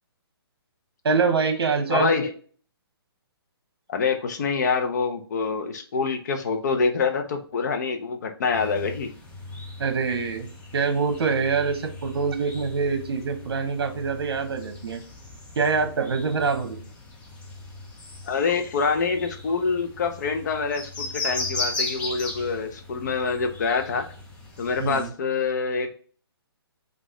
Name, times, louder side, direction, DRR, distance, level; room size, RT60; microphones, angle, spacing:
voice 1, 1.0-2.1 9.8-15.0 15.6-16.8 24.8-25.1, right 5 dB, 70° right, 7 dB, 1.0 m, -25 dB
voice 2, 1.9-2.3 3.9-9.1 18.3-24.0 24.6-25.9, left 5 dB, 45° left, 6 dB, 0.8 m, -26 dB
sound 1, 8.5-25.1, left 2 dB, 10° left, 0.5 m, -37 dB
5.1 x 2.6 x 3.7 m, 0.43 s
hypercardioid pair, 165°, 13 cm